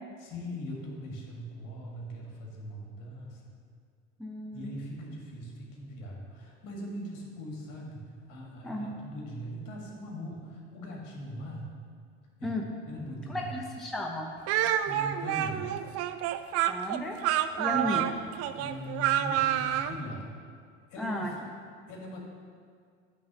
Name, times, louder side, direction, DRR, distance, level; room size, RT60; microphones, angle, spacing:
voice 1, 0.2-3.5 4.5-11.7 12.4-12.5 12.8-13.5 14.8-15.8 17.7-18.0 18.5-20.3 20.9-21.4 21.9-22.2, equal, 55° left, -1 dB, 1.7 m, -40 dB
voice 2, 4.2-4.7 8.6-8.9 12.4-12.7 13.3-14.3 16.7-17.2 17.6-18.1 21.0-21.3, equal, ahead, 0 dB, 0.7 m, -34 dB
Speech, 14.5-19.9, right 11 dB, 40° right, 0.4 m, -28 dB
9.2 x 3.5 x 6.0 m, 2.1 s
figure-of-eight pair, 65°, 37 cm